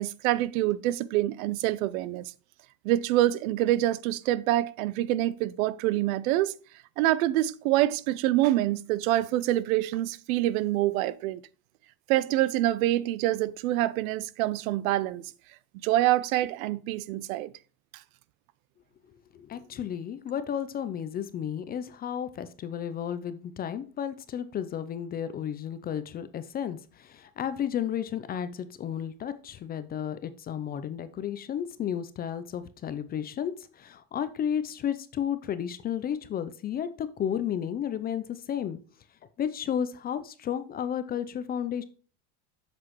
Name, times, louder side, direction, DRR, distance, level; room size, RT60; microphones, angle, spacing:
voice 1, 0.0-2.2 2.8-6.5 7.0-11.4 12.1-15.3 15.8-17.5, right 15 dB, 80° right, 0.6 m, -26 dB
voice 2, 19.3-38.8 39.4-41.8, left 9 dB, 25° left, 0.4 m, -33 dB
7.7 x 6.1 x 3.0 m
supercardioid pair, 135°, 41 cm